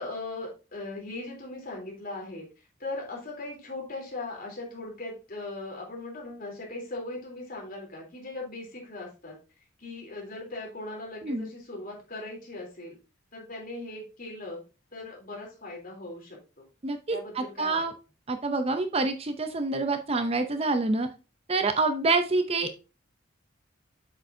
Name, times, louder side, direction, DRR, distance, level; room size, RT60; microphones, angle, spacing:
voice 1, 0.0-9.4 9.8-13.0 13.3-14.6 14.9-16.6 17.1-17.8, left 2 dB, 45° left, -2 dB, 3.4 m, -39 dB
voice 2, 16.8-17.9 18.3-21.1 21.5-22.7, right 3 dB, 30° right, 8 dB, 0.6 m, -27 dB
7.8 x 6.7 x 2.7 m, 0.31 s
head